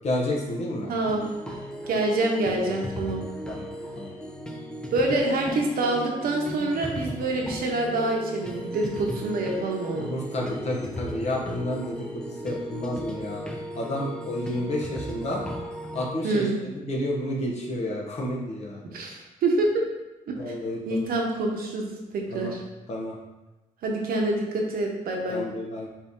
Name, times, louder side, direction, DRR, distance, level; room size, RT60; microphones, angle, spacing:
voice 1, 0.0-0.9 3.5-3.7 4.0-4.1 10.0-13.4 13.7-15.4 15.9-18.8 20.4-21.0 22.3-22.5 22.9-23.1 25.3-25.9, left 1 dB, 45° left, -2 dB, 0.9 m, -30 dB
voice 2, 0.9-1.2 1.9-3.2 4.9-10.1 16.2-16.6 18.9-19.8 20.3-20.4 20.9-21.9 22.1-22.6 23.8-25.4, right 2 dB, 80° right, 0 dB, 0.8 m, -26 dB
sound 1, 1.0-16.1, equal, 5° left, 0.4 m, -36 dB
4.4 x 2.7 x 3.5 m, 1.1 s
wide cardioid pair, 160°, 15 cm